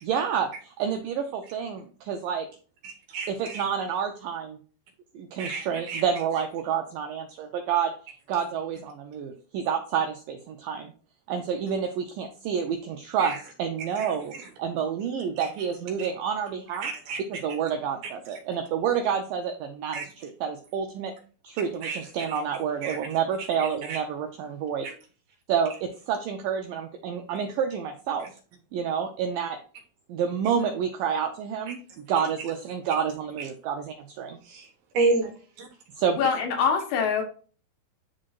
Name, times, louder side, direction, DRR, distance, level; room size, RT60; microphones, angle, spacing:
voice 1, 0.0-2.5 3.3-4.6 5.2-7.9 8.3-10.9 11.3-16.9 17.3-21.1 21.4-24.9 25.5-28.3 28.7-29.6 30.1-34.4 36.0-36.2, right 7 dB, 90° right, 4 dB, 1.9 m, -29 dB
voice 2, 2.8-3.6 5.4-6.0 13.2-13.4 14.0-14.5 16.0-16.1 16.8-17.2 18.0-18.1 19.9-20.0 21.8-22.0 22.3-22.4 22.8-23.0 23.6-24.0 24.8-24.9 31.7-31.8 33.4-33.5 34.5-34.7 34.9-35.3 35.6-35.7, right 3 dB, 70° right, 2 dB, 3.0 m, -30 dB
voice 3, 36.2-37.2, left 6 dB, 80° left, 4 dB, 3.1 m, -24 dB
10.5 x 3.7 x 2.5 m, 0.38 s
omnidirectional pair, 4.6 m